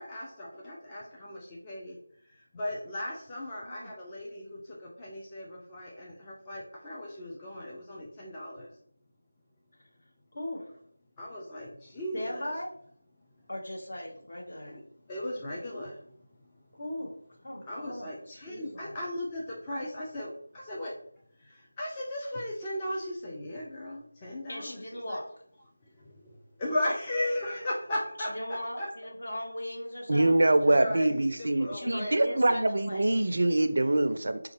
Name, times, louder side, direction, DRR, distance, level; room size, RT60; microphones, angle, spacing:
voice 1, 0.0-8.7 11.2-12.5 14.7-14.8 15.1-16.3 17.7-20.9 21.4-25.2 25.8-28.9 30.7-32.4, left 1 dB, 15° left, -5 dB, 0.5 m, -37 dB
voice 2, 10.3-10.6 12.1-12.7 13.5-14.8 16.7-17.1 17.4-19.0 24.5-25.3 28.3-30.8 31.7-33.1, left 1 dB, 50° left, -1 dB, 1.0 m, -38 dB
voice 3, 30.1-34.4, right 2 dB, 55° right, 9 dB, 0.4 m, -24 dB
5.1 x 2.3 x 3.1 m, 0.64 s
figure-of-eight pair, 165°, 0 cm